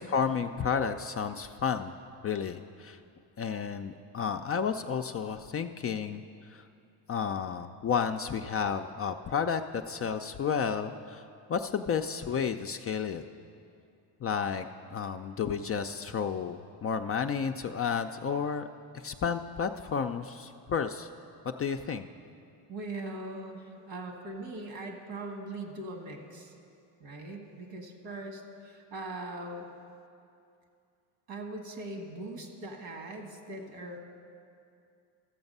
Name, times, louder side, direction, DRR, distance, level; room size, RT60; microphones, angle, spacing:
voice 1, 0.0-1.9 2.2-3.0 3.4-6.2 6.5-6.7 7.1-11.2 11.5-13.2 14.2-18.7 19.0-21.1 21.4-22.1, left 6 dB, 30° left, 6 dB, 0.4 m, -31 dB
voice 2, 22.7-26.5 27.0-29.7 31.3-34.0, right 2 dB, 75° right, 3 dB, 1.7 m, -40 dB
13.5 x 7.0 x 5.4 m, 2.5 s
hypercardioid pair, 65°, 50 cm